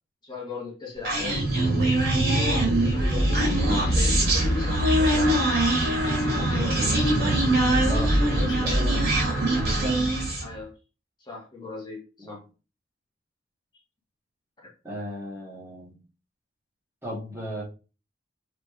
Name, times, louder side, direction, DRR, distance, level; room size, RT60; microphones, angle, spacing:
voice 1, 0.2-1.5 2.1-5.4 6.3-6.9 8.2-8.9 10.4-10.7 11.2-12.4, left 4 dB, 25° left, -4 dB, 2.1 m, -37 dB
Human voice, 1.0-10.5, right 1 dB, 55° right, 3.9 m, -22 dB
voice 2, 7.7-9.1 9.5-10.1 12.2-12.4 14.8-16.0 17.0-17.6, equal, 15° right, -5 dB, 3.3 m, -34 dB
6.7 x 5.0 x 3.5 m, 0.33 s
head